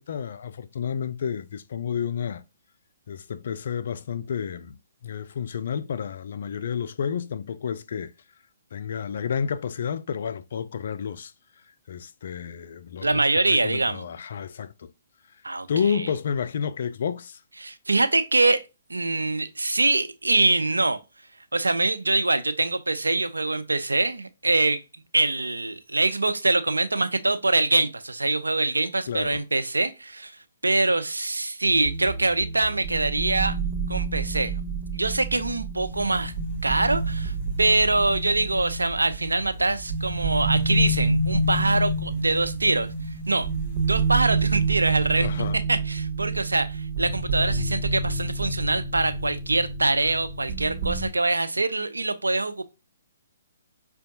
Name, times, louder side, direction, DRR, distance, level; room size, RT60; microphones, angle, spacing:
voice 1, 0.0-2.4 3.1-4.8 5.0-8.1 8.7-11.3 11.9-13.2 13.5-14.9 15.7-17.4 29.1-29.4 45.2-45.6, left 7 dB, 55° left, 0.3 m, -30 dB
voice 2, 13.0-14.0 15.4-16.1 17.6-18.6 18.9-21.0 21.5-24.8 25.1-30.3 30.6-33.6 33.9-34.5 34.9-36.3 36.6-37.3 37.6-42.9 43.3-43.5 43.9-45.3 45.5-52.6, right 2 dB, 85° right, 0.4 m, -24 dB
sound 1, 31.7-51.1, right 5 dB, 40° right, 0.7 m, -29 dB
sound 2, 35.9-45.5, left 5 dB, 30° left, 1.2 m, -33 dB
5.2 x 2.2 x 2.7 m
figure-of-eight pair, 130°, 0 cm